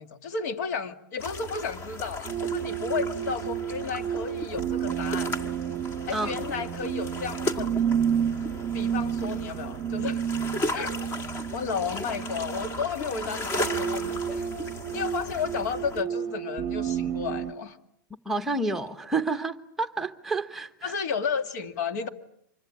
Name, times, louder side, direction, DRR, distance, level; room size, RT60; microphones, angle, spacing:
voice 1, 0.0-5.3 6.1-7.7 8.7-10.2 10.7-10.9 11.5-14.5 14.9-17.8 20.8-22.1, left 6 dB, 55° left, 2.1 m, -32 dB
sound 1, 1.2-16.0, left 1 dB, 20° left, 1.7 m, -36 dB
sound 2, 2.3-17.5, right 9 dB, 25° right, 1.0 m, -31 dB
voice 2, 18.2-20.9, right 3 dB, 5° right, 1.1 m, -29 dB
25.5 x 23.5 x 8.7 m
supercardioid pair, 160°, 11 cm